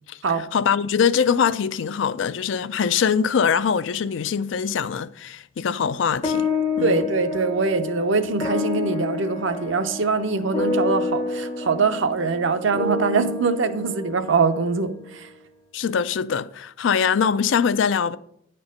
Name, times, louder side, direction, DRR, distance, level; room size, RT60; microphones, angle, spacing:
voice 1, 0.5-6.5 6.8-7.0 15.7-18.2, left 7 dB, 65° left, 0.4 m, -22 dB
sound 1, 6.2-14.9, left 3 dB, 30° left, 0.6 m, -28 dB
voice 2, 6.8-15.3, right 4 dB, 70° right, 0.6 m, -23 dB
9.5 x 4.5 x 5.1 m
head